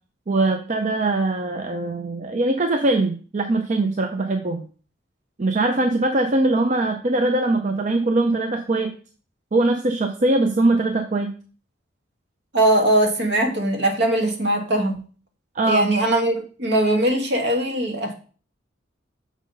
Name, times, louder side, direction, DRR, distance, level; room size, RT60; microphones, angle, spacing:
voice 1, 0.3-4.7 5.4-8.9 9.5-11.3 15.6-15.9, right 2 dB, 40° right, 4 dB, 0.5 m, -21 dB
voice 2, 12.5-15.0 15.6-18.1, right 1 dB, 60° right, 4 dB, 1.3 m, -20 dB
6.3 x 3.9 x 5.3 m, 0.39 s
head